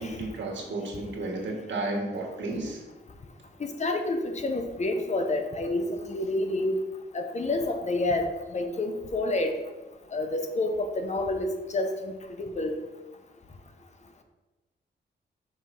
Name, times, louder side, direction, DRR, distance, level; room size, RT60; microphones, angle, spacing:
voice 1, 0.0-2.8, right 2 dB, 90° right, 0 dB, 1.9 m, -33 dB
voice 2, 3.6-6.8 7.1-9.5 10.1-12.1 12.4-12.8, left 2 dB, 40° left, 5 dB, 0.8 m, -29 dB
5.8 x 4.8 x 5.9 m, 1.1 s
wide cardioid pair, 160°, 18 cm